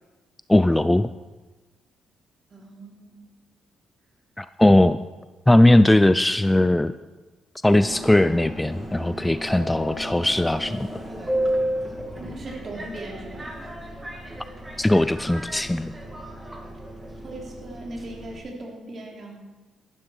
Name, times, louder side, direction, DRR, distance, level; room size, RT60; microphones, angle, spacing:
voice 1, 0.5-1.1 4.4-5.0 5.5-6.9 7.6-10.9 14.8-15.9, left 1 dB, 10° left, 13 dB, 0.4 m, -19 dB
voice 2, 2.5-3.2 12.2-13.5 17.2-19.4, right 1 dB, 45° right, 0 dB, 3.3 m, -38 dB
Subway metro underground, 7.6-18.4, equal, 20° right, 2.2 m, -33 dB
13.5 x 12.0 x 4.6 m, 1.2 s
cardioid pair, 90°, 0 cm